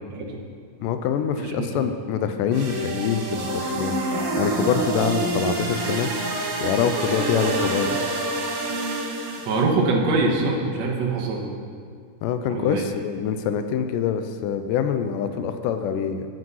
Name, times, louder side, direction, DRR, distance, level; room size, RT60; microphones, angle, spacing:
voice 1, 0.8-6.1 6.6-8.0 12.2-16.3, left 8 dB, 90° left, 9 dB, 2.2 m, -25 dB
voice 2, 1.4-1.7 9.2-11.7 12.5-12.8, right 3 dB, 65° right, 0 dB, 2.1 m, -24 dB
sound 1, 2.5-9.6, right 2 dB, 90° right, 3.3 m, -27 dB
13.5 x 5.2 x 5.5 m, 2.1 s
omnidirectional pair, 3.7 m